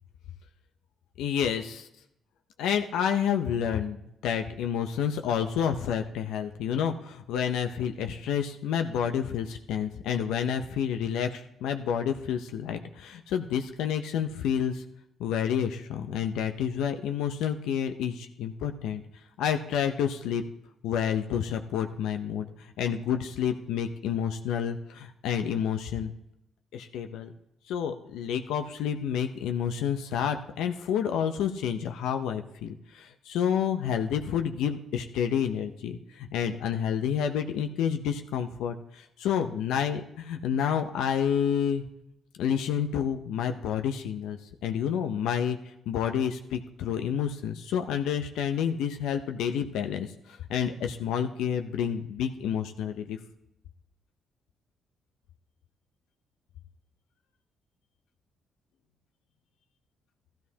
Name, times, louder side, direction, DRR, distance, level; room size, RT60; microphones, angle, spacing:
voice 1, 1.2-1.9 2.6-14.8 15.2-19.0 19.4-20.4 20.8-26.1 26.7-27.3 27.7-41.8 42.4-53.2, left 8 dB, 90° left, 6 dB, 0.6 m, -29 dB
13.5 x 13.0 x 2.8 m, 0.81 s
cardioid pair, 90°, 0 cm